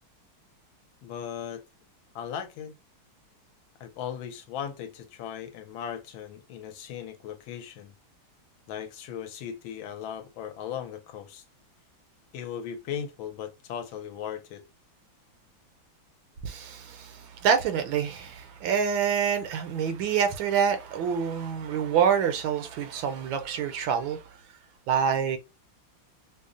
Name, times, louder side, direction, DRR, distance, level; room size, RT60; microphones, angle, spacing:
voice 1, 1.0-1.6 2.1-2.7 3.8-7.9 8.7-11.4 12.3-14.7, left 8 dB, 75° left, 1.4 m, -37 dB
voice 2, 16.4-24.2 24.9-25.4, right 7 dB, 75° right, 1.3 m, -26 dB
5.3 x 2.0 x 2.5 m
omnidirectional pair, 2.3 m